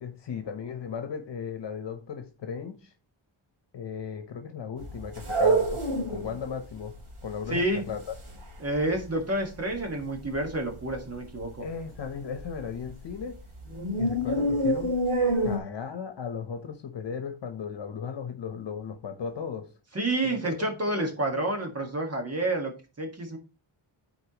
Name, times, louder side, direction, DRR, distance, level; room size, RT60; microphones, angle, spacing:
voice 1, 0.0-2.9 3.7-6.9 7.2-8.2 11.6-13.4 14.0-15.0 15.4-19.7 20.2-21.0, left 6 dB, 60° left, 1.1 m, -36 dB
sound 1, 4.8-6.4 6.7-6.8 7.0-9.2 9.5-9.7 10.1-10.6 10.9-11.0 11.4-11.5 12.0-13.3 13.6-15.6, right 1 dB, 85° right, 2.5 m, -27 dB
voice 2, 7.5-7.8 8.6-11.7 19.9-23.4, right 1 dB, 30° right, 1.7 m, -29 dB
11.5 x 4.5 x 3.0 m
wide cardioid pair, 140°, 48 cm